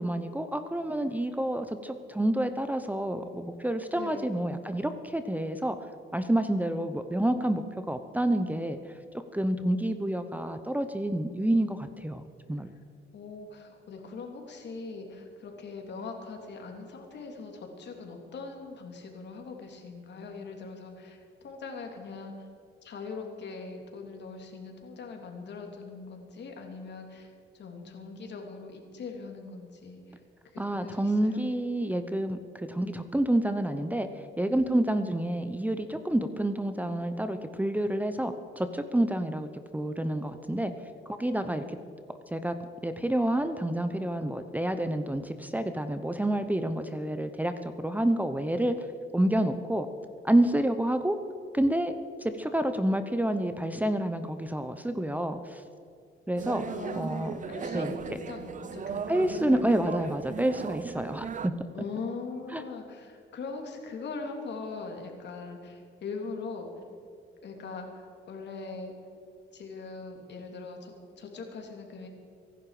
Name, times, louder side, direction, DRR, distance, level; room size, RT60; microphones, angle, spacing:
voice 1, 0.0-5.8 6.1-8.8 9.3-12.2 12.5-12.7 30.6-40.7 41.1-41.8 42.3-42.6 42.8-48.8 49.1-49.9 50.2-51.2 51.5-51.9 52.2-55.6 56.3-56.7 57.0-57.4 57.7-58.0 59.1-61.5 62.5-62.6, right 1 dB, 10° right, 9 dB, 0.9 m, -28 dB
voice 2, 4.0-4.3 13.1-22.3 22.8-30.2 30.5-31.4 56.7-59.2 61.7-66.7 67.4-68.9 69.5-72.1, left 4 dB, 60° left, 2 dB, 3.0 m, -41 dB
sound 1, 56.4-61.5, right 6 dB, 40° right, 0.7 m, -37 dB
24.0 x 11.0 x 5.1 m, 2.3 s
cardioid pair, 90°, 20 cm